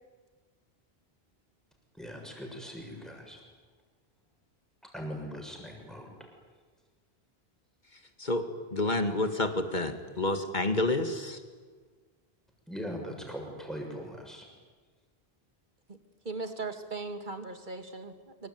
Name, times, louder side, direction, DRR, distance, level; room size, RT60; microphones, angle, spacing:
voice 1, 1.9-3.4 4.8-6.2 12.7-14.5, equal, ahead, 1 dB, 6.9 m, -40 dB
voice 2, 8.7-11.4, left 2 dB, 45° left, 7 dB, 2.3 m, -29 dB
voice 3, 16.2-18.5, right 3 dB, 50° right, 7 dB, 2.4 m, -38 dB
26.0 x 24.0 x 9.6 m, 1.4 s
omnidirectional pair, 1.1 m